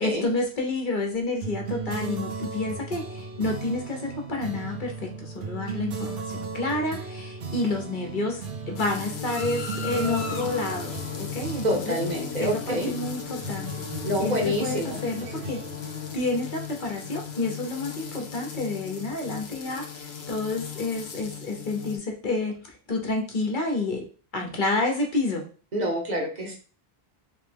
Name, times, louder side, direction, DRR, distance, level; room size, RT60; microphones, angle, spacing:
voice 1, 0.0-12.0 12.4-13.8 14.2-15.6 16.1-22.6 22.9-24.0 24.3-25.4, left 2 dB, 55° left, 2 dB, 1.1 m, -29 dB
sound 1, 1.4-17.3, right 4 dB, 70° right, 0.9 m, -36 dB
sound 2, 8.8-22.0, left 7 dB, 90° left, 1.0 m, -36 dB
voice 2, 11.6-12.9 14.0-15.0 25.7-26.5, equal, 45° right, 1 dB, 1.1 m, -27 dB
3.5 x 3.3 x 3.4 m, 0.39 s
omnidirectional pair, 1.0 m